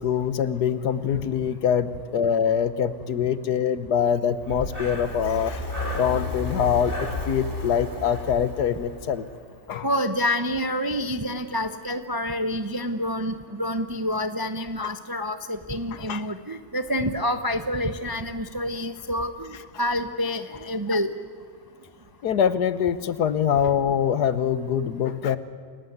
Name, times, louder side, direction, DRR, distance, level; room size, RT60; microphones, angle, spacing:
voice 1, 0.0-5.7 5.9-9.2 9.7-9.9 14.8-15.0 15.9-16.2 20.9-21.0 22.2-25.4, left 8 dB, 70° left, 14 dB, 1.5 m, -24 dB
Breathing, 4.4-9.3, left 2 dB, 30° left, 3.5 m, -32 dB
voice 2, 9.8-21.1, left 1 dB, 25° right, 9 dB, 0.5 m, -28 dB
28.5 x 17.0 x 9.4 m, 2.1 s
omnidirectional pair, 1.9 m